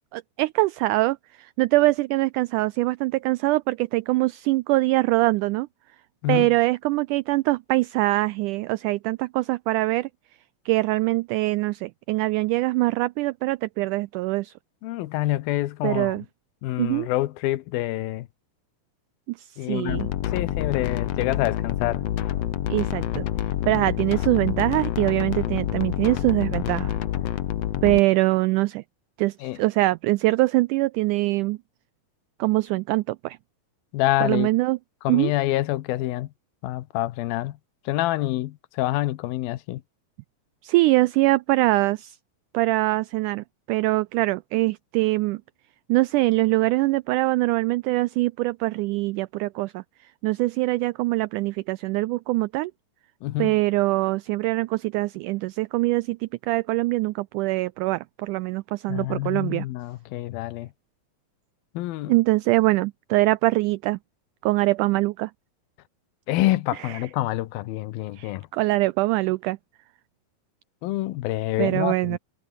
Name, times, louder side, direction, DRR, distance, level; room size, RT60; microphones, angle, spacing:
voice 1, 0.1-5.7 6.3-10.1 10.7-14.5 15.8-16.3 16.8-17.1 19.3-20.1 22.7-23.3 23.7-27.0 27.8-28.8 29.2-31.6 32.4-33.4 34.2-34.8 35.1-35.3 40.6-42.2 42.5-45.4 45.9-49.8 50.2-52.7 53.4-59.7 62.1-64.0 64.4-65.3 66.8-67.0 68.2-69.6 71.6-72.2, right 20 dB, 90° right, 1.8 m, -23 dB
voice 2, 14.8-16.2 16.6-18.3 19.6-20.0 20.3-22.0 29.4-29.6 33.9-34.5 35.0-36.3 36.6-37.6 37.9-39.8 53.2-53.5 58.9-60.7 61.7-62.1 66.3-68.5 70.8-72.2, left 16 dB, 90° left, 2.8 m, -27 dB
sound 1, 19.9-28.0, left 12 dB, 60° left, 1.8 m, -27 dB
omnidirectional pair, 4.1 m